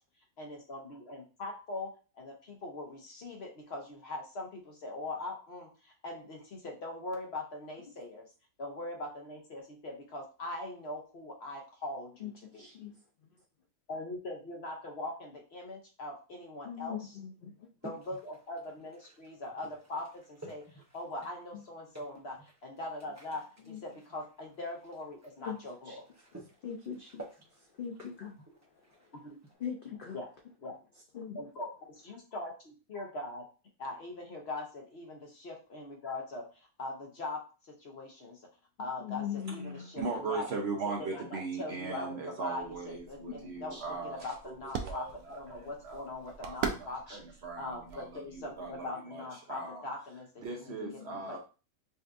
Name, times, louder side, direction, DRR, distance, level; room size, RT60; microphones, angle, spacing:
voice 1, 0.4-8.3 8.6-12.3 12.5-12.6 13.9-17.0 17.8-26.0 29.2-29.4 30.1-30.3 30.6-30.7 31.3-33.4 33.8-38.4 38.8-39.2 39.5-40.5 41.0-47.2 47.6-50.7 51.0-51.4, left 2 dB, 50° left, 1 dB, 1.0 m, -41 dB
voice 2, 12.2-13.0 16.6-17.7 21.5-21.6 23.6-23.8 25.4-25.6 25.8-26.0 26.3-29.1 29.6-30.2 30.9-31.4 38.8-40.0 43.2-43.9 45.5-45.6 46.7-46.8 47.1-47.2 50.8-51.4, left 8 dB, 70° left, 2 dB, 0.5 m, -42 dB
sound 1, 17.8-29.5, right 2 dB, 20° right, 0.5 m, -54 dB
voice 3, 40.0-46.0 46.4-49.8 50.4-51.4, right 4 dB, 60° right, 2 dB, 0.8 m, -39 dB
sound 2, 42.6-48.9, right 6 dB, 75° right, 1.0 m, -42 dB
5.2 x 2.4 x 2.5 m, 0.34 s
omnidirectional pair, 1.5 m